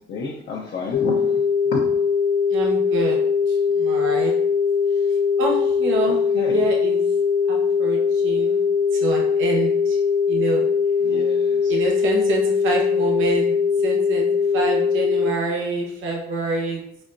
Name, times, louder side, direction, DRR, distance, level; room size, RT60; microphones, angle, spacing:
voice 1, 0.1-1.2 1.7-1.8 6.1-6.6 11.0-11.7, left 3 dB, 60° left, -4 dB, 0.8 m, -30 dB
sound 1, 0.9-15.3, left 5 dB, 45° left, 0.4 m, -21 dB
voice 2, 2.5-3.2 3.5-4.3 5.4-7.0 7.5-8.6 8.9-10.0 10.3-10.7 11.7-14.3 14.5-16.8, right 3 dB, 85° right, -1 dB, 1.0 m, -27 dB
4.3 x 4.2 x 2.5 m, 0.75 s
cardioid pair, 90°, 20 cm